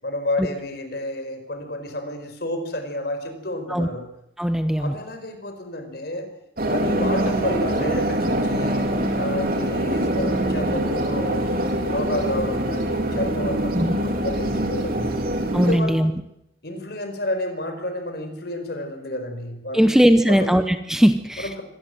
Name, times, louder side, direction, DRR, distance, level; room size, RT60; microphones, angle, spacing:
voice 1, 0.0-4.1 4.8-6.3 6.7-11.5 11.9-15.1 15.6-16.1 16.6-20.5 21.4-21.6, left 1 dB, 55° left, 7 dB, 4.7 m, -30 dB
voice 2, 4.4-4.9 13.7-13.9 15.5-16.1 19.7-21.5, equal, 5° right, 9 dB, 0.9 m, -19 dB
sound 1, 6.6-15.8, right 1 dB, 50° right, 3.7 m, -24 dB
25.0 x 18.5 x 7.8 m, 0.80 s
head